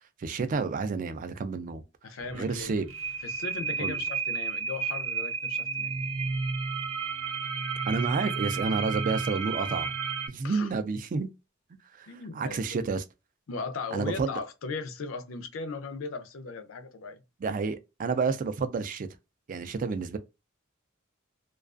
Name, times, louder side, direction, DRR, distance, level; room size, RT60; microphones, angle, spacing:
voice 1, 0.2-1.8 2.3-2.9 3.8-4.0 7.9-9.9 10.3-11.3 11.9-13.0 13.9-14.3 17.4-19.1 19.5-20.2, right 4 dB, 40° right, 0.3 m, -30 dB
voice 2, 2.0-2.7 3.2-6.0 10.4-10.8 12.1-12.8 13.5-17.2, left 4 dB, 70° left, 0.5 m, -37 dB
sound 1, 2.2-10.3, right 5 dB, 75° right, 0.7 m, -32 dB
2.3 x 2.3 x 2.4 m
head